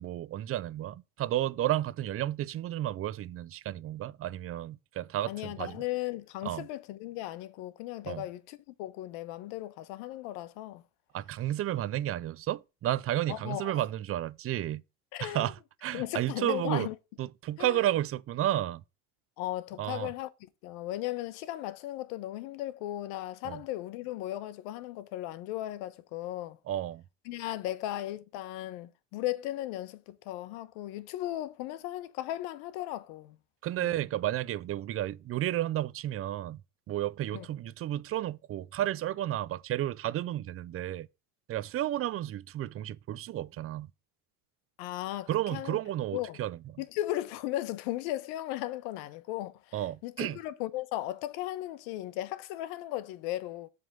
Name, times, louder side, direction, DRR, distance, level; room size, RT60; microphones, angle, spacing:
voice 1, 0.0-5.8 6.4-6.7 8.0-8.3 11.1-14.8 15.2-16.9 17.2-18.8 19.8-20.1 23.4-23.6 26.7-27.0 33.6-36.6 36.9-41.1 41.5-43.9 45.3-46.8 49.7-50.4, right 13 dB, 35° right, 0.4 m, -32 dB
voice 2, 5.3-10.8 13.3-13.7 15.1-15.5 15.9-16.9 17.6-17.8 19.4-26.6 27.2-33.4 33.8-34.0 37.3-37.5 44.8-45.8 46.1-46.4 46.8-53.7, left 15 dB, 75° left, 1.0 m, -36 dB
7.6 x 3.5 x 6.4 m
supercardioid pair, 95°, 40 cm